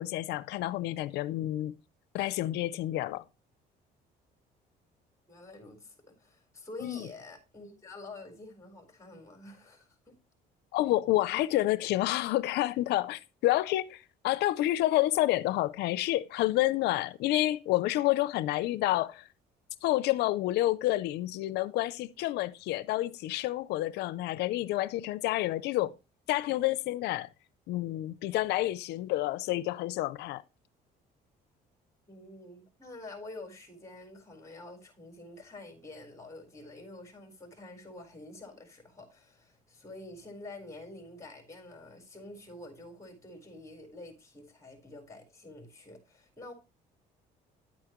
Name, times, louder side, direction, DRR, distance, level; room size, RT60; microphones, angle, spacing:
voice 1, 0.0-1.8 2.1-3.2 6.8-7.1 10.7-19.2 19.8-25.9 26.3-27.3 27.7-30.4, left 16 dB, 80° left, 0.5 m, -29 dB
voice 2, 5.3-10.1 32.1-46.5, left 2 dB, 20° left, 4.2 m, -48 dB
10.5 x 8.7 x 3.0 m
cardioid pair, 110°, 17 cm